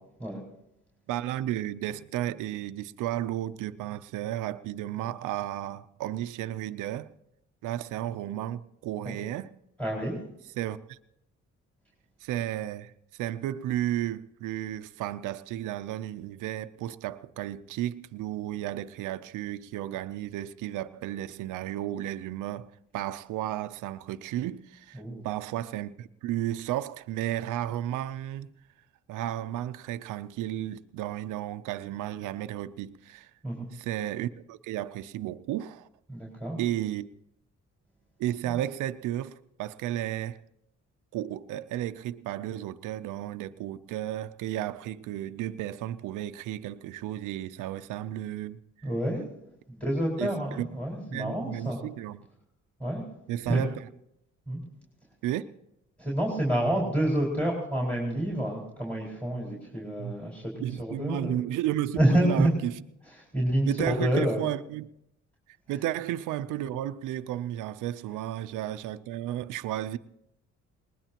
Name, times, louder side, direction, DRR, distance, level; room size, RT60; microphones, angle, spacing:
voice 1, 1.1-7.1 7.6-9.5 10.6-11.0 12.2-28.5 29.1-33.3 33.7-35.9 36.6-37.1 38.2-40.4 41.1-48.6 50.2-50.7 51.1-52.2 53.3-53.9 55.2-55.4 60.0-60.2 60.6-62.8 63.7-64.9 65.7-70.0, right 13 dB, 90° right, 0.6 m, -33 dB
voice 2, 9.8-10.2 25.0-25.2 33.4-33.7 36.1-36.6 48.8-49.2 49.7-51.8 52.8-53.0 53.5-53.6 54.5-54.6 56.0-60.5 60.8-61.4 62.0-62.5 63.3-64.4, right 1 dB, 5° left, 4.7 m, -28 dB
20.0 x 20.0 x 2.9 m
cardioid pair, 90°, 30 cm